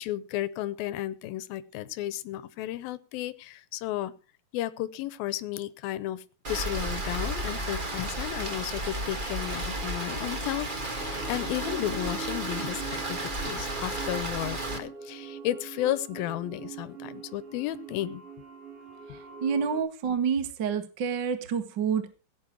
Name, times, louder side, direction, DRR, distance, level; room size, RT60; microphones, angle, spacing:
voice 1, 0.0-4.1 4.5-18.2, left 14 dB, 85° left, 15 dB, 2.7 m, -33 dB
Rain, 6.4-14.8, right 1 dB, 75° right, 0.4 m, -33 dB
sound 1, 10.8-19.8, right 5 dB, 60° right, 6.0 m, -43 dB
voice 2, 19.1-22.1, right 6 dB, 40° right, 9 dB, 1.7 m, -28 dB
17.0 x 9.6 x 4.7 m, 0.32 s
omnidirectional pair, 4.2 m